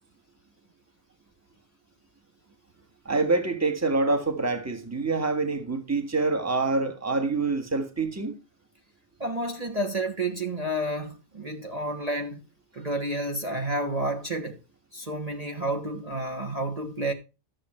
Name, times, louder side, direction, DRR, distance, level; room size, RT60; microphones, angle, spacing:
voice 1, 3.0-8.4, right 3 dB, 15° right, 1.5 m, -26 dB
voice 2, 9.2-12.4 12.7-14.6 14.9-17.1, right 1 dB, 35° right, 1.4 m, -30 dB
13.0 x 7.3 x 4.4 m
omnidirectional pair, 1.2 m